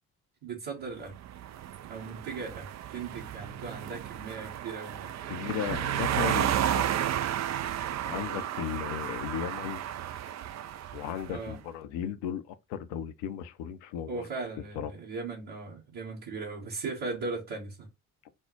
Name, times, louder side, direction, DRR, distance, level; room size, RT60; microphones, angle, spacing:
voice 1, 0.4-1.1 1.9-5.1 11.3-11.6 14.1-17.9, right 4 dB, 65° right, 1.9 m, -38 dB
sound 1, 1.1-11.4, right 11 dB, 40° right, 0.4 m, -33 dB
voice 2, 5.3-6.9 8.1-9.8 10.9-14.3 14.8-14.9, left 9 dB, 75° left, 0.7 m, -35 dB
5.4 x 2.1 x 4.7 m
hypercardioid pair, 40°, 41 cm